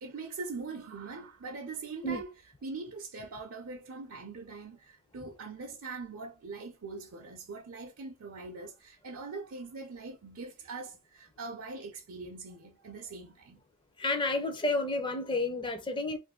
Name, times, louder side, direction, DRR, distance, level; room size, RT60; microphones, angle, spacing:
voice 1, 0.0-2.3 2.6-13.6, right 3 dB, 70° right, 0.6 m, -42 dB
voice 2, 14.0-16.2, left 2 dB, 20° left, 0.5 m, -30 dB
2.6 x 2.6 x 3.6 m
head